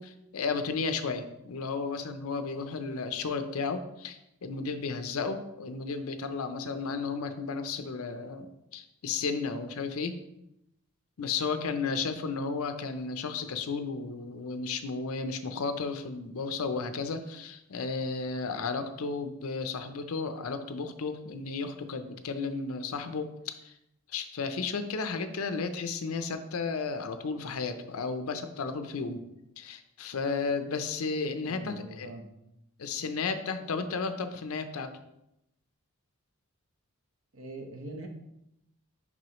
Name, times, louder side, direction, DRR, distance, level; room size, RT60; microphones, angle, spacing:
voice 1, 0.0-10.2 11.2-23.7 24.1-29.2 29.6-32.1 32.8-34.9, left 4 dB, 75° left, 9 dB, 0.5 m, -33 dB
voice 2, 31.4-32.3 37.3-38.1, right 2 dB, 65° right, 3 dB, 0.9 m, -42 dB
6.2 x 5.4 x 3.0 m, 0.83 s
head